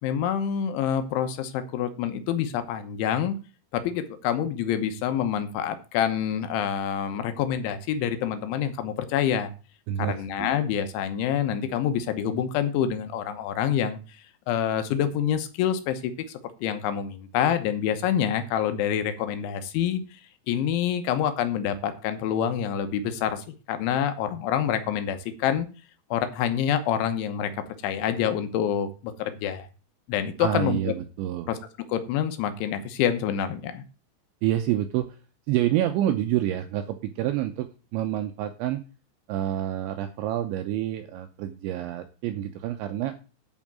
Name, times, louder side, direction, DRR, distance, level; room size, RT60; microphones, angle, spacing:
voice 1, 0.0-3.4 3.7-9.5 10.0-14.0 14.5-20.0 20.5-25.7 26.1-27.5 27.8-29.7 30.1-30.9 31.5-31.6 31.9-33.8, left 9 dB, 75° left, 9 dB, 3.2 m, -27 dB
voice 2, 9.9-10.5 30.4-31.5 34.4-35.2 35.5-38.8 39.3-43.2, right 12 dB, 80° right, 7 dB, 2.7 m, -28 dB
11.0 x 5.2 x 7.4 m, 0.34 s
omnidirectional pair, 6.0 m